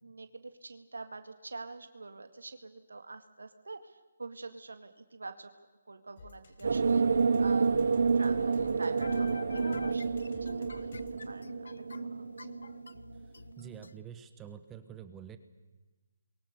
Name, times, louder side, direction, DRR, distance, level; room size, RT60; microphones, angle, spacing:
voice 1, 0.0-5.5 5.9-7.8 8.1-10.9 11.3-11.5 11.8-12.5, right 3 dB, 90° right, 8 dB, 2.0 m, -45 dB
sound 1, 6.2-11.3, left 4 dB, 55° left, 4.8 m, -52 dB
sound 2, 6.6-13.0, right 5 dB, 70° right, 0.9 m, -29 dB
sound 3, 7.1-13.9, left 4 dB, 80° left, 1.0 m, -46 dB
voice 2, 13.6-15.4, right 8 dB, 15° right, 10 dB, 1.4 m, -47 dB
28.5 x 23.0 x 7.0 m, 1.2 s
hypercardioid pair, 155°, 0 cm